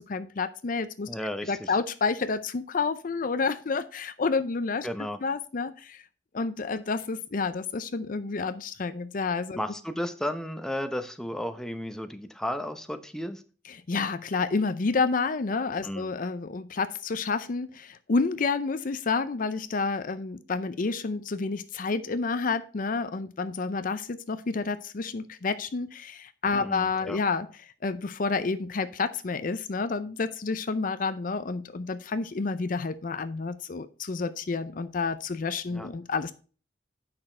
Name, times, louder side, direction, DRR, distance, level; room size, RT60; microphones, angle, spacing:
voice 1, 0.0-1.1 1.5-4.9 5.2-6.0 6.3-9.6 13.7-27.5 27.8-36.3, left 4 dB, 50° left, 12 dB, 0.5 m, -29 dB
voice 2, 1.1-1.7 4.8-5.2 9.6-13.4 15.8-16.1 26.5-27.2 35.7-35.9, left 1 dB, 5° left, 7 dB, 0.7 m, -34 dB
8.7 x 6.0 x 4.4 m, 0.38 s
head